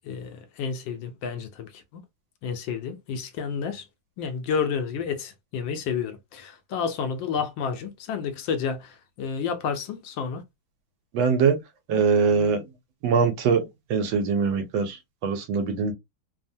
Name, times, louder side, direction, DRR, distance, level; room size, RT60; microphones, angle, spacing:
voice 1, 0.0-1.7 2.4-3.8 4.2-10.4, left 6 dB, 75° left, 1.2 m, -30 dB
voice 2, 11.1-11.6 11.9-12.6 13.0-15.9, right 5 dB, 75° right, 1.4 m, -23 dB
3.4 x 2.1 x 2.6 m
omnidirectional pair, 2.2 m